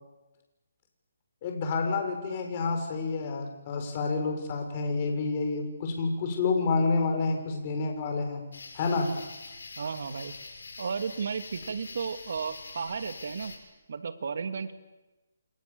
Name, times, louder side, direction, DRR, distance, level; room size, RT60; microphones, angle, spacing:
voice 1, 1.4-8.4 8.7-9.1, left 4 dB, 35° left, 4 dB, 6.6 m, -29 dB
sound 1, 8.5-13.6, left 3 dB, 80° left, 6.8 m, -45 dB
voice 2, 9.8-10.3 10.8-13.5 13.9-14.7, right 5 dB, 65° right, 8 dB, 2.8 m, -33 dB
28.5 x 28.0 x 7.3 m, 1.1 s
hypercardioid pair, 160°, 0 cm